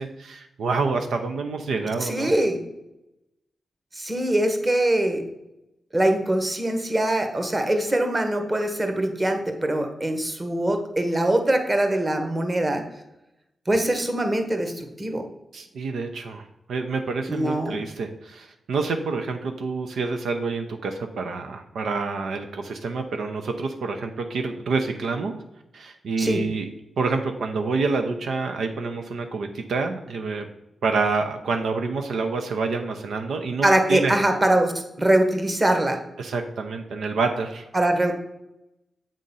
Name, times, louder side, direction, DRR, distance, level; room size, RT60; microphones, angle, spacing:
voice 1, 0.0-2.3 15.5-25.3 25.7-26.7 27.0-30.5 30.8-34.1 36.2-37.7, right 4 dB, 85° right, 5 dB, 0.6 m, -27 dB
voice 2, 2.0-2.6 3.9-5.2 5.9-12.8 13.7-15.2 17.3-17.8 26.2-26.4 33.6-34.7 35.0-36.0 37.7-38.2, right 1 dB, 25° right, 6 dB, 1.2 m, -22 dB
7.4 x 3.8 x 5.4 m, 0.90 s
cardioid pair, 65°, 0 cm